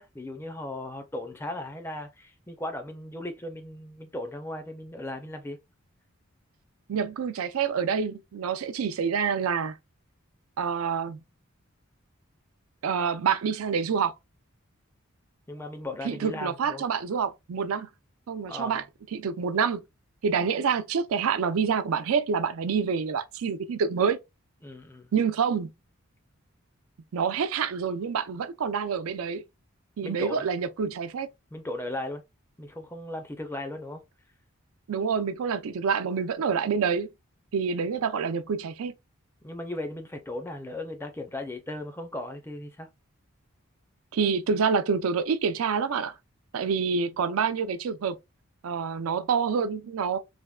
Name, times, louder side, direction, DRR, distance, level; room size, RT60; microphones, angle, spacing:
voice 1, 0.0-5.6 15.5-16.8 18.5-18.8 24.6-25.1 30.0-30.5 31.5-32.2 32.6-34.0 39.4-42.9, left 1 dB, 10° left, 0.4 m, -37 dB
voice 2, 6.9-9.8 10.6-11.2 12.8-14.1 16.0-17.9 18.3-18.8 19.1-19.8 20.2-24.2 25.1-25.7 27.1-29.4 30.0-31.3 34.9-37.1 37.5-38.9 44.1-46.1 46.5-48.2 48.6-50.2, right 6 dB, 85° right, 0.4 m, -27 dB
3.4 x 2.1 x 2.2 m
head